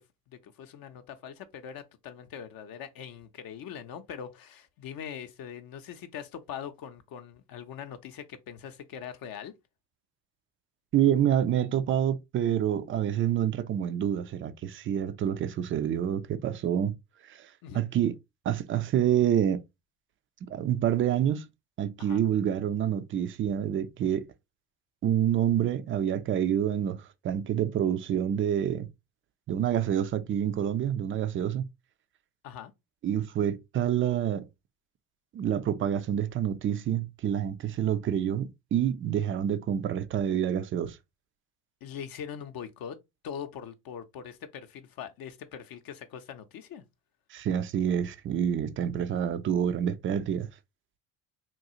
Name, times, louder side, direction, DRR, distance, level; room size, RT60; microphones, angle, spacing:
voice 1, 0.3-9.5 17.6-17.9 22.0-22.2 32.4-32.7 41.8-43.0 43.2-46.8, left 8 dB, 50° left, 0.6 m, -42 dB
voice 2, 10.9-16.9 17.2-17.5 17.7-18.1 18.5-19.6 20.4-21.5 21.8-24.3 25.0-28.9 29.5-31.6 33.0-34.5 35.3-41.0 47.3-50.5, right 10 dB, 30° right, 0.4 m, -27 dB
3.8 x 2.3 x 2.7 m
hypercardioid pair, 65°, 48 cm